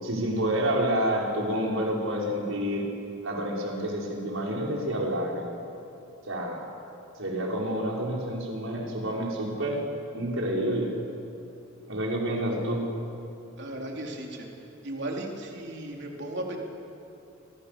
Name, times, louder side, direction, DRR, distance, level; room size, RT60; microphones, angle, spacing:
voice 1, 0.0-2.8 3.2-5.5 6.3-6.6 7.2-9.8 10.1-10.9 11.9-12.8, right 1 dB, 70° right, -2 dB, 5.7 m, -28 dB
voice 2, 13.6-14.5 14.8-16.6, right 1 dB, 55° right, 0 dB, 3.9 m, -35 dB
28.5 x 25.0 x 7.0 m, 2.8 s
head